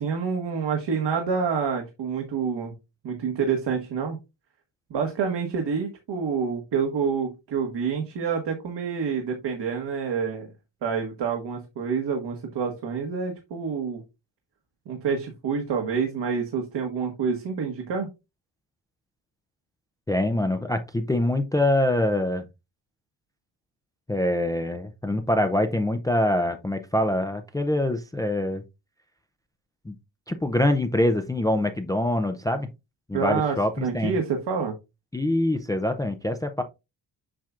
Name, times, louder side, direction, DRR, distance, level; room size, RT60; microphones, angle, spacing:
voice 1, 0.0-2.7 3.0-4.2 4.9-10.5 10.8-14.0 14.9-18.1 33.1-34.7, right 6 dB, 70° right, 1.5 m, -27 dB
voice 2, 20.1-22.5 24.1-28.6 29.9-30.0 30.3-32.7 33.1-34.1 35.1-36.6, left 1 dB, 10° left, 0.4 m, -24 dB
7.5 x 5.7 x 2.4 m
cardioid pair, 145°, 43 cm